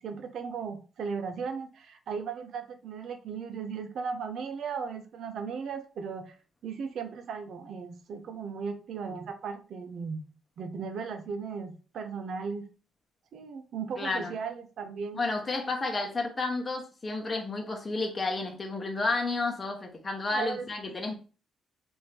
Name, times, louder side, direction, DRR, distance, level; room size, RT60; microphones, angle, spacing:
voice 1, 0.0-6.4 6.6-10.2 10.6-12.6 13.3-15.2 20.3-20.7, right 6 dB, 65° right, 0.7 m, -36 dB
voice 2, 14.0-14.3 15.2-21.1, left 3 dB, 30° left, 0.8 m, -31 dB
3.2 x 2.6 x 4.4 m
cardioid pair, 90°, 0 cm